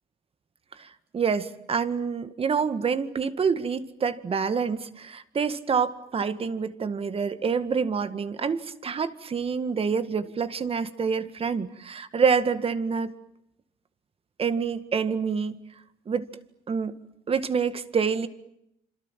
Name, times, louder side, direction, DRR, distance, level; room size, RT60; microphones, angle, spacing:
voice 1, 1.1-13.1 14.4-15.6 16.1-16.2 16.7-16.9 17.3-18.3, right 6 dB, 35° right, 12 dB, 1.9 m, -27 dB
27.0 x 27.0 x 7.5 m, 0.80 s
cardioid pair, 110°, 17 cm